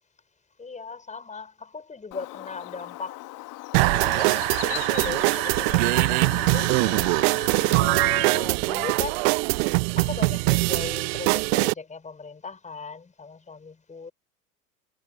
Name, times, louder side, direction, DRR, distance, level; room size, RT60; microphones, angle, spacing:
voice 1, 0.6-3.3 3.8-6.7 7.2-7.4 7.8-9.6 9.9-14.1, left 4 dB, 15° left, 5.4 m, -38 dB
Bird, 2.1-7.9, left 19 dB, 45° left, 2.0 m, -38 dB
sound 1, 3.7-11.7, right 29 dB, 50° right, 0.6 m, -22 dB
figure-of-eight pair, 85°, 43 cm